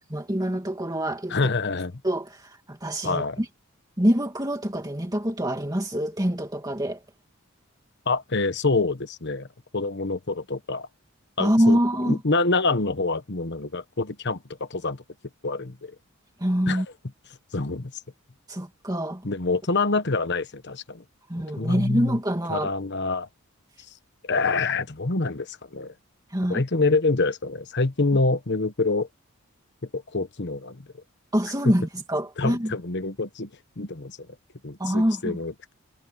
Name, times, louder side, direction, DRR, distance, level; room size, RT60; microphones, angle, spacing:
voice 1, 0.1-1.4 2.0-3.5 4.0-7.0 11.4-12.2 16.4-16.9 18.5-19.2 21.3-22.7 26.3-26.6 31.3-32.7 34.8-35.4, equal, 15° right, 2.6 m, -25 dB
voice 2, 1.3-1.9 3.0-3.4 8.1-9.5 9.7-10.9 11.4-11.8 12.0-15.0 15.4-15.9 16.7-16.8 17.5-17.9 19.2-21.0 21.6-22.2 22.5-23.3 24.2-25.9 26.5-29.1 29.9-30.9 31.6-31.7 32.4-33.5 33.8-34.2 34.6-35.7, left 3 dB, 55° left, 1.2 m, -26 dB
head